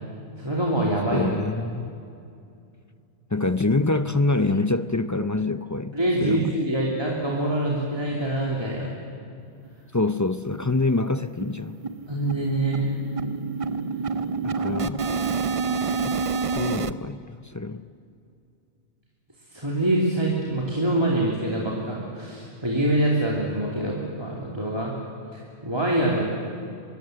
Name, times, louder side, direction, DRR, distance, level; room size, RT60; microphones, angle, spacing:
voice 1, 0.4-1.3 5.9-8.9 12.1-12.9 19.5-24.9 25.3-26.2, right 1 dB, 20° right, -4 dB, 2.9 m, -25 dB
voice 2, 1.1-1.9 3.3-5.9 6.2-6.6 9.9-11.8 14.4-15.1 16.0-16.2 16.5-17.8, left 2 dB, 25° left, 12 dB, 0.4 m, -25 dB
sound 1, 9.6-9.7 10.1-10.2 10.5-10.7 11.0-16.9, right 4 dB, 40° right, 0.5 m, -28 dB
24.0 x 22.0 x 7.8 m, 2.5 s
omnidirectional pair, 1.3 m